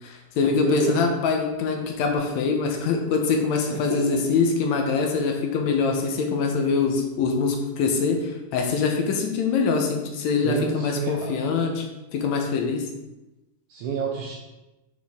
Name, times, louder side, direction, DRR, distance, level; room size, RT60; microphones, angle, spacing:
voice 1, 0.0-11.9 12.1-12.9, left 5 dB, 70° left, 2 dB, 1.9 m, -24 dB
voice 2, 0.6-1.1 3.7-4.2 10.4-11.3 13.7-14.4, right 6 dB, 75° right, -2 dB, 2.2 m, -29 dB
9.5 x 4.4 x 3.5 m, 1.0 s
omnidirectional pair, 3.7 m